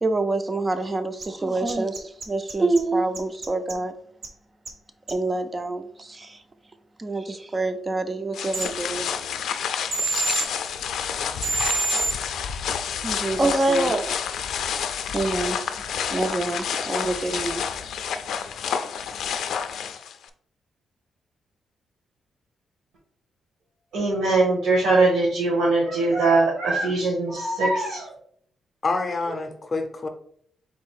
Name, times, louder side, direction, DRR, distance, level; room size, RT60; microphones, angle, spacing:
voice 1, 0.0-3.9 5.1-6.4 7.0-9.1 9.6-9.8 13.0-14.5 15.1-17.6, right 2 dB, 20° right, 9 dB, 0.4 m, -26 dB
sound 1, 1.2-1.3 1.7-2.8 3.1-3.7 4.2-4.3 4.6-4.7 5.1-5.2 8.5-8.7 9.9-10.4 11.4-12.1, right 3 dB, 40° right, 0.7 m, -26 dB
sound 2, 8.3-20.3, left 7 dB, 85° left, 0.4 m, -29 dB
voice 2, 23.9-28.1, right 3 dB, 80° right, -5 dB, 1.4 m, -21 dB
voice 3, 28.8-30.1, left 3 dB, 25° left, 5 dB, 0.6 m, -27 dB
4.1 x 2.7 x 4.7 m, 0.64 s
wide cardioid pair, 160°, 0 cm